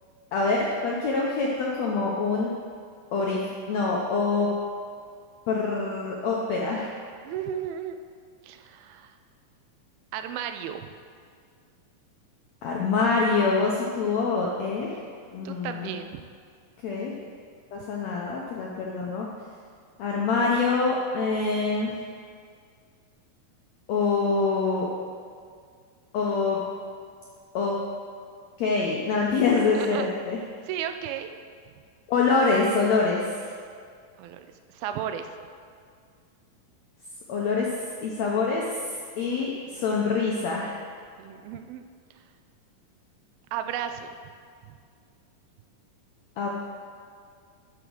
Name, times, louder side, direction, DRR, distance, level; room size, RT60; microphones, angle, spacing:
voice 1, 0.3-2.5 3.1-4.5 5.5-6.9 12.6-15.0 15.3-15.9 16.8-17.1 17.7-19.3 20.0-21.9 23.9-24.9 26.1-26.6 27.5-27.8 28.6-30.4 32.1-33.4 37.3-37.7 38.0-38.6 39.2-40.8 46.4-46.5, left 4 dB, 75° left, -2 dB, 1.5 m, -25 dB
voice 2, 7.2-8.0 8.4-9.2 10.1-10.9 14.7-14.9 15.5-16.3 29.7-30.1 30.7-31.4 34.2-35.3 41.2-41.8 42.1-42.2 43.5-44.2 44.7-44.8, right 9 dB, 85° right, 8 dB, 2.4 m, -34 dB
12.5 x 5.0 x 6.2 m, 2.1 s
omnidirectional pair, 4.2 m